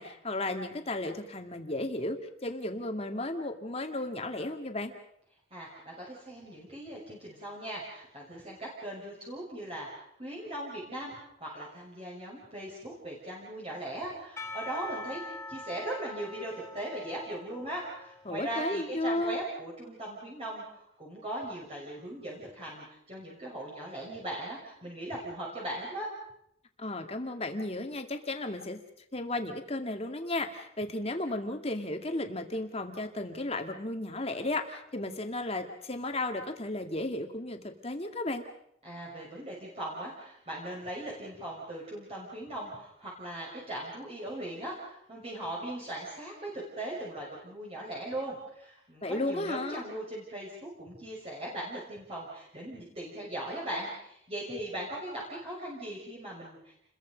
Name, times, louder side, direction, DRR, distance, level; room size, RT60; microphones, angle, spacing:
voice 1, 0.0-4.9 18.3-19.4 26.8-28.8 29.1-38.4 49.0-49.8, left 2 dB, 30° left, 5 dB, 2.3 m, -34 dB
voice 2, 5.5-15.2 15.5-26.1 38.8-56.8, right 1 dB, 30° right, -4 dB, 6.2 m, -39 dB
Percussion / Church bell, 14.4-18.8, left 2 dB, 15° left, 2.1 m, -44 dB
29.5 x 22.0 x 5.3 m, 0.74 s
head